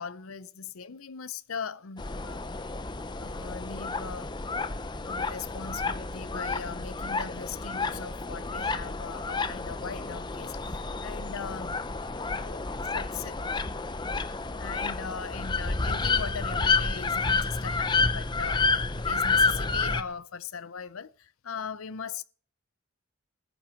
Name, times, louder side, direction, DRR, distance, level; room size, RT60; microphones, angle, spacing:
voice 1, 0.0-2.4 3.2-4.3 5.0-11.8 12.2-12.6 12.9-13.4 14.6-22.2, left 6 dB, 85° left, 0.7 m, -39 dB
sound 1, 2.0-20.0, left 4 dB, 20° left, 0.7 m, -30 dB
15.0 x 8.8 x 7.0 m
head